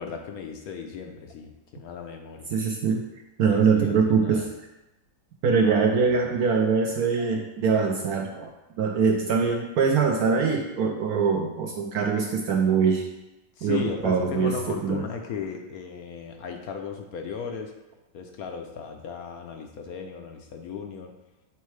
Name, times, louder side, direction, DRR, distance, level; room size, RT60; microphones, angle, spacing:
voice 1, 0.0-2.6 3.5-4.5 5.6-6.0 13.6-17.7 18.1-21.1, left 6 dB, 70° left, 3 dB, 0.9 m, -36 dB
voice 2, 2.5-3.0 3.4-4.5 5.4-8.5 8.8-13.1 13.6-15.1, right 5 dB, 75° right, 2 dB, 0.8 m, -23 dB
8.2 x 4.5 x 3.2 m, 0.99 s
omnidirectional pair, 2.1 m